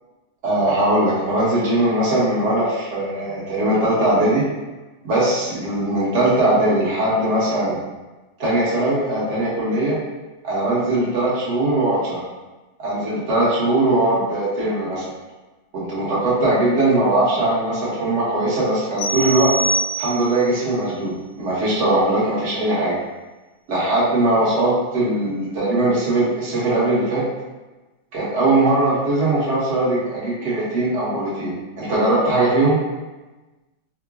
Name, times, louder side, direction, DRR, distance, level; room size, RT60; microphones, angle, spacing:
voice 1, 0.4-4.5 5.0-7.8 8.4-10.0 10.4-12.2 12.8-15.0 15.7-19.5 20.0-23.0 23.7-27.2 28.1-32.8, right 2 dB, 45° right, -8 dB, 1.1 m, -20 dB
sound 1, 19.0-20.5, right 2 dB, 75° left, 1.2 m, -24 dB
3.7 x 2.2 x 2.4 m, 1.1 s
omnidirectional pair, 2.0 m